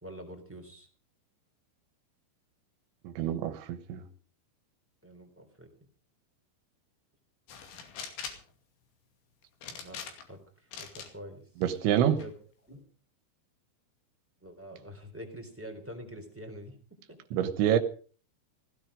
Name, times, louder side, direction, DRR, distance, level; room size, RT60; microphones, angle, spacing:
voice 1, 0.0-0.9 5.0-5.7 9.7-10.0 10.3-10.4 10.8-11.4 12.0-12.3 12.6-12.8 14.4-16.7 17.1-17.2, equal, 5° right, 4 dB, 2.5 m, -45 dB
voice 2, 3.1-4.0 11.6-12.2 17.3-17.8, right 10 dB, 85° right, 10 dB, 3.5 m, -27 dB
sound 1, 7.5-8.5 9.6-10.4 10.7-11.1 11.6-12.3, left 7 dB, 80° left, 4.8 m, -42 dB
16.5 x 16.0 x 5.0 m, 0.41 s
omnidirectional pair, 5.2 m